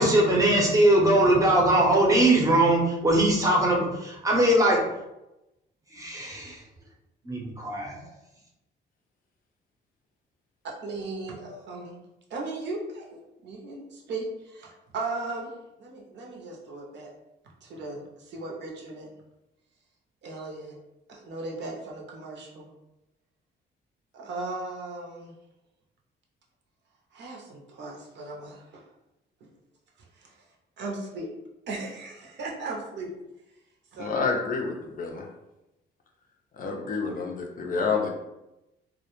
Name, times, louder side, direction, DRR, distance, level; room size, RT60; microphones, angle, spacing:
voice 1, 0.0-4.8 5.9-6.6 7.2-8.0, right 1 dB, 15° right, -2 dB, 0.7 m, -21 dB
voice 2, 10.6-12.0 12.3-15.5 15.8-17.1 17.6-19.1 20.2-20.7 21.1-22.7 24.1-25.3 27.1-28.8 30.8-31.3 31.7-33.1 33.9-34.2, right 3 dB, 65° right, -1 dB, 0.6 m, -37 dB
voice 3, 34.0-35.3 36.5-38.1, left 4 dB, 45° left, 1 dB, 0.5 m, -28 dB
2.1 x 2.1 x 2.9 m, 0.94 s
cardioid pair, 90°, 20 cm